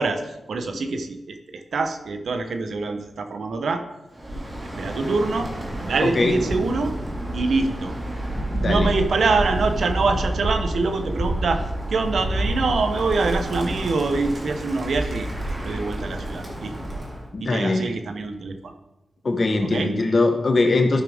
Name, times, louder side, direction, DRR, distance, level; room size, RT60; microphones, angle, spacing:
voice 1, 0.0-3.8 4.6-5.5 5.8-6.9 7.3-8.0 8.3-11.6 11.9-15.3 15.6-16.7 17.4-18.7 19.6-19.9, right 3 dB, 75° right, 7 dB, 0.9 m, -25 dB
Bird, 4.1-17.2, right 1 dB, 35° right, 2.4 m, -29 dB
voice 2, 6.0-6.4 8.5-8.9 17.3-17.8 19.2-21.0, left 3 dB, 50° left, 4 dB, 1.4 m, -21 dB
12.5 x 6.1 x 3.5 m, 0.97 s
cardioid pair, 50°, 0 cm